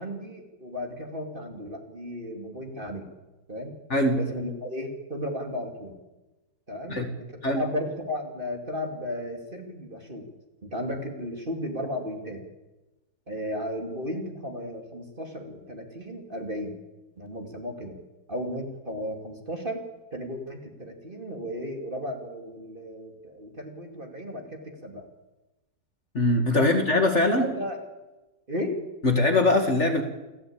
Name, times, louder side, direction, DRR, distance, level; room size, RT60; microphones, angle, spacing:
voice 1, 0.0-3.1 3.5-3.8 4.1-5.9 6.7-10.3 10.6-12.4 13.3-16.7 17.2-18.0 18.3-19.8 20.1-25.1 26.5-26.7 27.3-27.8 28.5-28.8, left 1 dB, 30° right, 3 dB, 2.8 m, -34 dB
voice 2, 3.9-4.2 6.9-7.1 7.4-7.6 26.1-27.5 29.0-30.0, left 2 dB, 40° left, 5 dB, 2.4 m, -22 dB
29.0 x 12.5 x 8.7 m, 1.1 s
omnidirectional pair, 1.9 m